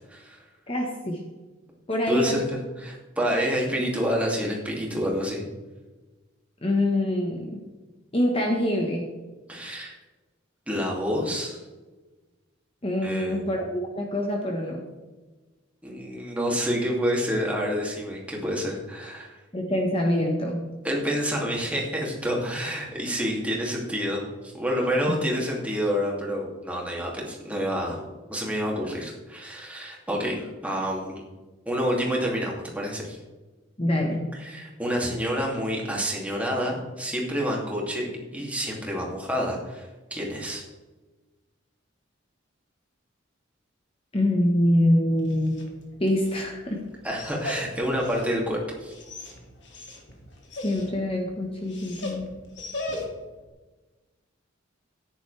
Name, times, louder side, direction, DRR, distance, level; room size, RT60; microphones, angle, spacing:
voice 1, 0.7-1.2 1.9-2.4 6.6-7.6 8.1-9.1 12.8-14.8 19.5-20.7 33.8-34.2 44.1-45.6 46.0-46.8 50.6-52.3, left 1 dB, 30° left, 1 dB, 1.3 m, -25 dB
voice 2, 2.1-2.4 2.8-5.5 9.5-9.9 10.7-11.6 13.0-13.5 15.8-19.3 20.8-28.0 28.3-31.2 31.7-33.2 34.3-40.6 47.0-48.9, equal, 5° right, -2 dB, 2.6 m, -28 dB
Dog, 45.1-53.4, left 2 dB, 60° left, 2.4 m, -39 dB
14.0 x 10.0 x 3.4 m, 1.2 s
head